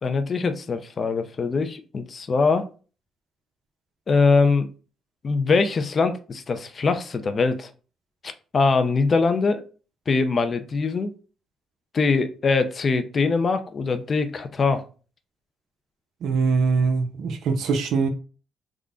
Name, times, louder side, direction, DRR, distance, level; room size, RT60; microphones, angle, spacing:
voice 1, 0.0-2.7 4.1-4.7 5.2-7.7 8.2-9.6 10.1-11.1 11.9-14.8, left 4 dB, 40° left, 0.5 m, -22 dB
voice 2, 16.2-18.1, right 5 dB, 80° right, 0.7 m, -22 dB
3.7 x 2.2 x 3.7 m
cardioid pair, 90°, 0 cm